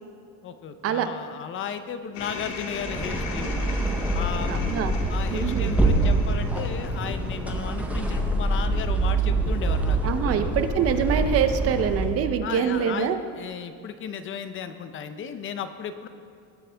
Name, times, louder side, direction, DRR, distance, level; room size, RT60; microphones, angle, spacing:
voice 1, 0.4-3.7 4.1-4.8 5.1-10.6 12.4-16.1, left 7 dB, 30° left, 10 dB, 0.6 m, -35 dB
sound 1, 2.1-7.6, left 4 dB, 70° left, 1.7 m, -38 dB
sound 2, 2.7-12.2, right 2 dB, 5° right, 0.7 m, -25 dB
voice 2, 4.5-4.9 5.3-5.7 10.0-13.2, right 7 dB, 35° right, 9 dB, 0.7 m, -25 dB
19.0 x 8.1 x 3.4 m, 2.4 s
cardioid pair, 155°, 40 cm